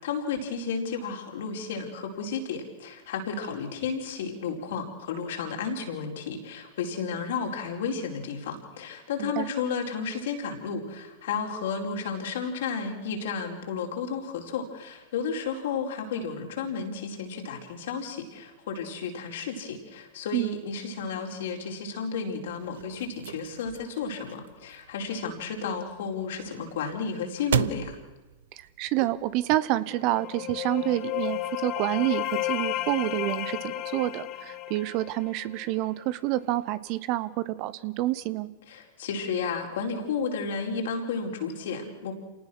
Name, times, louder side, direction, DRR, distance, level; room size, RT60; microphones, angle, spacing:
voice 1, 0.0-28.0 38.7-42.1, left 5 dB, 70° left, 2 dB, 4.6 m, -32 dB
sound 1, 22.5-29.5, right 10 dB, 75° right, 0.7 m, -36 dB
voice 2, 28.5-38.5, right 16 dB, 50° right, 16 dB, 1.1 m, -28 dB
sound 2, 29.9-35.6, left 15 dB, 45° left, 1.4 m, -33 dB
27.5 x 18.5 x 6.3 m, 1.1 s
hypercardioid pair, 100°, 0 cm